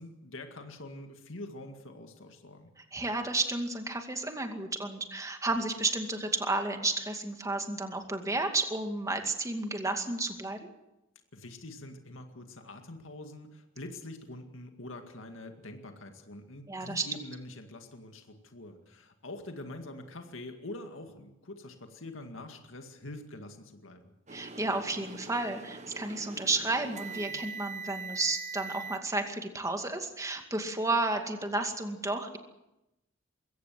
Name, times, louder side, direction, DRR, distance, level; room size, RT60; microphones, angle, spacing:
voice 1, 0.0-2.7 11.3-24.1, left 2 dB, 85° left, 5 dB, 2.1 m, -45 dB
voice 2, 2.8-10.7 16.7-17.1 24.3-32.4, right 2 dB, 15° right, 5 dB, 2.3 m, -32 dB
sound 1, 24.3-29.0, right 4 dB, 35° right, 1.1 m, -42 dB
22.0 x 17.0 x 7.7 m, 0.90 s
head